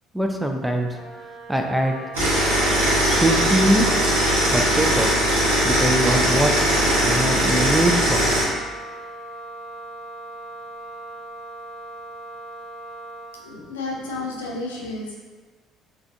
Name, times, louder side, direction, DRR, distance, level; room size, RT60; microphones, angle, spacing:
voice 1, 0.1-1.0 1.5-2.0 3.1-3.9 4.5-5.2 5.6-6.6 7.0-8.3, right 1 dB, 5° right, 3 dB, 0.3 m, -22 dB
Wind instrument woodwind instrument, 0.9-13.4, right 1 dB, 70° right, 1.1 m, -39 dB
sound 1, 2.1-8.4, right 1 dB, 90° right, 0.6 m, -20 dB
voice 2, 13.3-15.2, left 2 dB, 90° left, -1 dB, 0.3 m, -31 dB
2.4 x 2.2 x 2.5 m, 1.4 s
hypercardioid pair, 55°, 0 cm